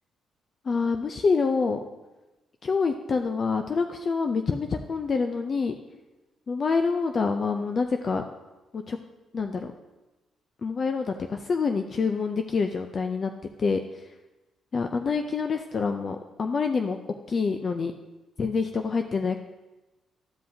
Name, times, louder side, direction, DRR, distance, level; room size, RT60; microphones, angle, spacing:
voice 1, 0.6-1.8 2.6-5.7 6.5-8.2 8.7-9.0 9.3-9.7 10.6-13.3 13.6-14.0 14.7-17.0 17.3-17.9 18.4-19.4, left 4 dB, 45° left, 6 dB, 0.4 m, -26 dB
12.0 x 5.4 x 2.7 m, 1.1 s
cardioid pair, 90°, 0 cm